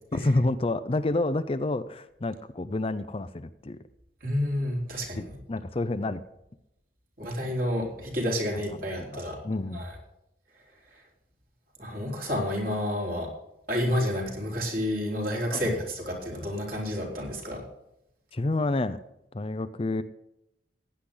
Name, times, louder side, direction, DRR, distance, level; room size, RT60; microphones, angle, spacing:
voice 1, 0.1-3.8 5.5-6.2 8.7-9.8 15.5-15.7 18.3-19.0 19.3-20.0, left 2 dB, 30° left, 12 dB, 0.5 m, -29 dB
voice 2, 4.2-5.2 7.2-9.4 9.7-9.9 11.8-13.3 13.7-17.6, equal, 50° right, -1 dB, 4.3 m, -30 dB
16.0 x 10.0 x 3.9 m, 0.85 s
head